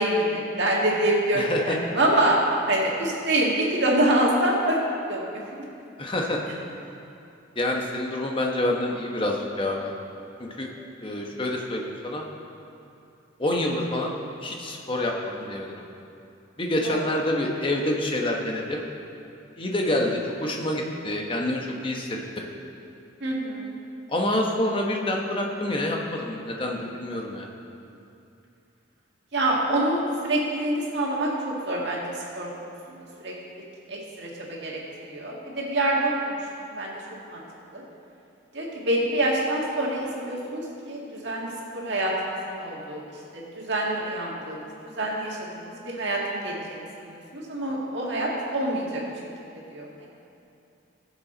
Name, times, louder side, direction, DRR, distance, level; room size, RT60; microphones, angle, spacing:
voice 1, 0.0-2.4 2.7-4.8 5.1-5.7 16.8-17.1 23.2-23.7 29.3-33.3 33.9-34.8 35.1-36.9 37.2-37.4 37.7-37.8 38.5-43.0 43.3-44.7 45.0-49.0 49.7-50.1, right 1 dB, 60° right, -3 dB, 2.0 m, -26 dB
voice 2, 1.3-1.8 6.0-6.4 7.5-9.9 10.4-10.7 11.0-12.2 13.4-14.1 14.4-15.8 16.6-18.8 19.6-22.2 24.1-27.5, left 1 dB, 25° left, 0 dB, 1.0 m, -27 dB
16.0 x 7.2 x 3.9 m, 2.7 s
head